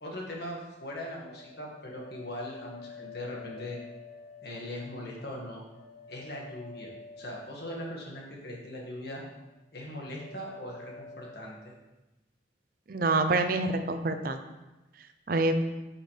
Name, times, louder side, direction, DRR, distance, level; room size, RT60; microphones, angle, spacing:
voice 1, 0.0-3.8 4.4-5.6 6.1-6.9 7.2-9.2 9.7-11.7, left 1 dB, 55° left, -2 dB, 1.8 m, -40 dB
sound 1, 0.6-8.7 9.0-9.6 9.9-11.6, left 4 dB, 35° left, 1.5 m, -49 dB
voice 2, 12.9-14.4 15.3-15.5, right 3 dB, 50° right, 8 dB, 0.5 m, -26 dB
8.7 x 6.3 x 3.3 m, 1.0 s
head